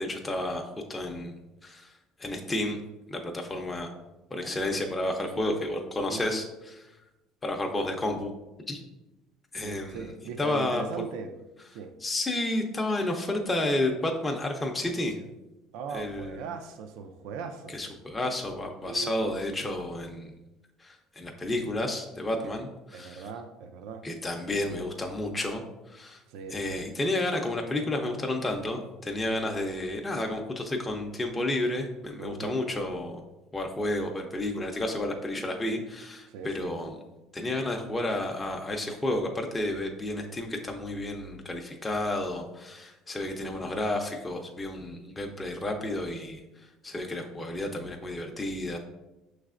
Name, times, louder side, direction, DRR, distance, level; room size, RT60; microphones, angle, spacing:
voice 1, 0.0-1.4 1.6-1.9 2.2-2.8 3.1-3.9 4.3-6.5 7.4-8.3 8.7-8.8 9.5-10.1 10.4-10.8 12.0-15.2 15.9-16.4 17.7-20.3 20.8-23.2 24.0-26.2 26.5-33.2 33.5-36.9 37.3-46.4 46.8-48.8, left 1 dB, 15° left, 2 dB, 0.5 m, -31 dB
voice 2, 5.2-5.6 6.1-6.4 9.6-11.3 11.7-11.9 15.7-17.9 18.8-19.4 22.4-22.5 22.9-24.0 26.3-26.8 32.2-32.6 36.3-36.7 43.4-43.6, right 6 dB, 80° right, 6 dB, 0.4 m, -39 dB
6.0 x 3.2 x 2.4 m, 1.0 s
cardioid pair, 115°, 0 cm